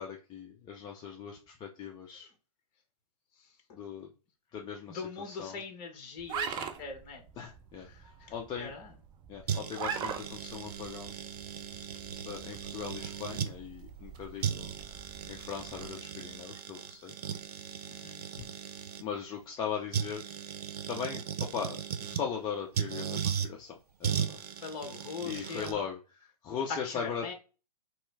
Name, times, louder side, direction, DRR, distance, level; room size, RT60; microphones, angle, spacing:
voice 1, 0.0-2.3 3.7-4.1 4.5-5.6 7.4-7.9 8.3-8.7 9.3-11.1 12.3-14.7 15.3-17.1 19.0-20.2 20.9-21.8 22.1-24.4 25.2-26.0 26.4-27.3, left 7 dB, 20° left, 0.6 m, -39 dB
voice 2, 4.9-7.2 7.9-8.9 17.9-18.2 24.6-25.8 26.7-27.3, left 5 dB, 35° left, 1.4 m, -41 dB
sound 1, 6.2-16.0, right 7 dB, 20° right, 0.5 m, -43 dB
sound 2, 9.5-13.5 14.1-14.2 14.4-19.0 19.9-22.3 22.7-23.5 24.0-25.7, right 8 dB, 70° right, 0.7 m, -37 dB
3.1 x 3.0 x 4.6 m
hypercardioid pair, 125°, 21 cm